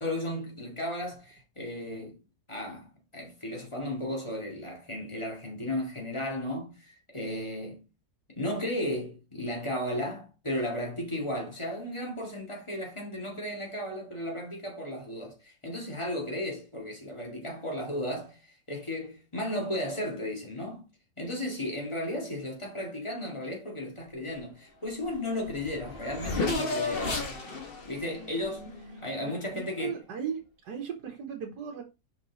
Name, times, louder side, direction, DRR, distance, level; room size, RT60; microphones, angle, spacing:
voice 1, 0.0-2.2 2.5-7.8 8.3-20.9 21.2-27.2 27.8-28.7 29.0-30.0, left 1 dB, 20° left, 2.0 m, -35 dB
Race car auto racing / Accelerating revving vroom, 25.1-25.2 25.4-29.4, left 3 dB, 35° left, 1.4 m, -33 dB
voice 2, 29.3-31.8, right 7 dB, 80° right, 1.7 m, -37 dB
5.5 x 4.5 x 4.0 m
omnidirectional pair, 1.7 m